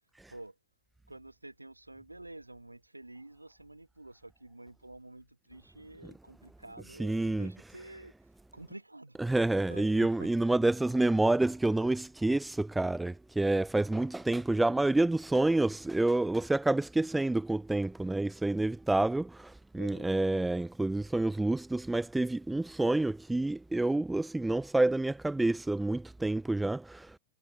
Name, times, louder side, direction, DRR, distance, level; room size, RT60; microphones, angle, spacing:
voice 1, 1.1-8.1 8.5-9.2 9.7-10.3 19.8-20.1, right 2 dB, 85° right, 7.7 m, -49 dB
voice 2, 7.0-7.5 9.2-27.1, right 2 dB, 5° right, 0.4 m, -28 dB
figure-of-eight pair, 105°, 0 cm